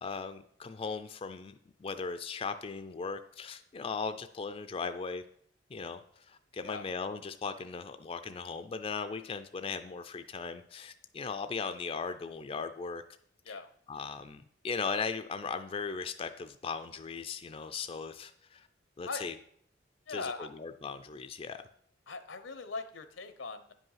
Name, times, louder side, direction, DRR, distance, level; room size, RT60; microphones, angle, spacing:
voice 1, 0.0-5.2 5.7-13.0 13.5-13.6 13.9-18.7 19.0-19.3 20.1-21.6, left 5 dB, 30° left, 9 dB, 0.4 m, -38 dB
voice 2, 20.1-20.5 22.1-23.7, left 3 dB, 85° left, 10 dB, 0.9 m, -40 dB
9.9 x 5.4 x 5.7 m, 0.67 s
head